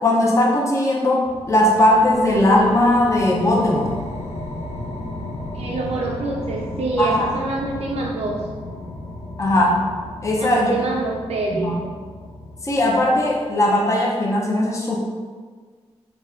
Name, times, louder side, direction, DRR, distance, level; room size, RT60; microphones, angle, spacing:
voice 1, 0.0-4.0 7.0-7.2 9.4-9.8 10.2-10.7 11.5-11.8 12.6-15.0, left 1 dB, 25° left, -3 dB, 0.7 m, -18 dB
sound 1, 1.2-13.8, left 1 dB, 85° left, 0.6 m, -35 dB
voice 2, 5.5-8.4 10.4-11.7, right 3 dB, 65° right, -3 dB, 0.4 m, -25 dB
4.0 x 2.2 x 3.6 m, 1.6 s
cardioid pair, 65°, 11 cm